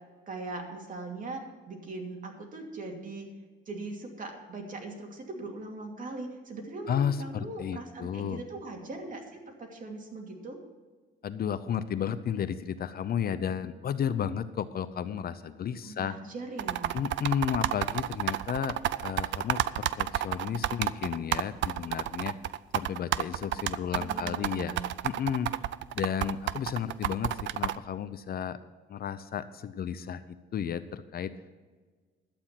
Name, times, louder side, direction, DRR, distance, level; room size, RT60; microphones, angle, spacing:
voice 1, 0.3-1.4 1.7-3.3 3.7-10.6 15.8-17.0 23.9-24.9, right 2 dB, 45° right, 2 dB, 2.6 m, -40 dB
voice 2, 6.9-8.4 11.2-16.2 16.9-18.8 19.0-22.4 22.7-24.8 25.0-25.5 25.9-28.6 28.9-30.2 30.5-31.3, left 8 dB, 50° left, 13 dB, 0.6 m, -32 dB
sound 1, 16.6-27.8, right 13 dB, 70° right, 0.5 m, -30 dB
12.0 x 8.7 x 5.9 m, 1.4 s
cardioid pair, 110°, 20 cm